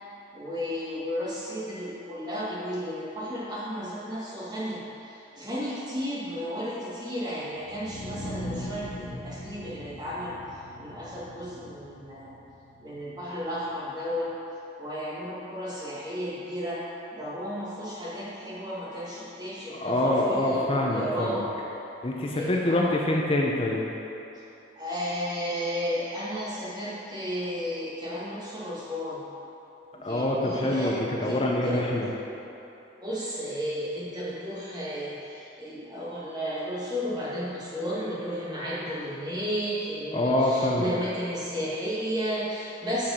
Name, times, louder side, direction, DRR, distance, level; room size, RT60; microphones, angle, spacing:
voice 1, 0.3-10.3 10.8-12.3 12.8-14.3 14.8-16.8 17.1-21.4 22.3-22.9 24.7-29.2 29.9-31.0 31.2-31.9 33.0-43.1, equal, 20° right, -8 dB, 1.6 m, -33 dB
sound 1, 7.5-13.5, equal, 55° left, 1.1 m, -40 dB
voice 2, 19.7-21.5 22.0-23.8 30.0-32.1 40.1-40.9, left 1 dB, 30° left, -2 dB, 0.6 m, -25 dB
7.4 x 4.6 x 5.6 m, 3.0 s
head